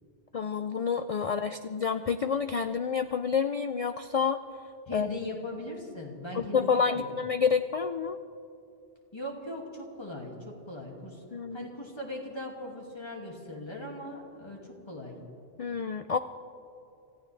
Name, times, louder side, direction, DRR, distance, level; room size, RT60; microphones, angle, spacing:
voice 1, 0.3-4.4 4.9-5.1 6.3-8.2 11.3-11.6 15.6-16.2, left 6 dB, 65° left, 9 dB, 0.3 m, -28 dB
voice 2, 4.9-7.2 9.1-11.2 11.5-15.2, left 1 dB, 25° left, -1 dB, 2.4 m, -39 dB
26.5 x 15.0 x 3.4 m, 2.6 s
omnidirectional pair, 1.1 m